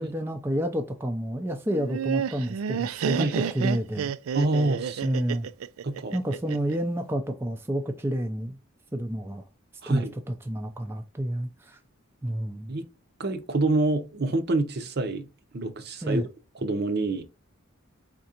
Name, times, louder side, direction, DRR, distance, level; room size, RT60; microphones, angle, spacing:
voice 1, 0.0-4.1 5.0-5.5 6.1-8.6 8.9-9.4 9.9-11.8 12.2-12.7 16.0-16.3, equal, 10° right, 0.4 m, -29 dB
Laughter, 1.7-6.8, right 7 dB, 85° right, 0.3 m, -30 dB
voice 2, 4.3-5.0 5.8-6.2 9.8-10.1 12.7-12.9 13.2-15.3 15.5-16.3 16.6-17.2, right 2 dB, 50° right, 0.7 m, -26 dB
4.4 x 3.7 x 2.8 m
head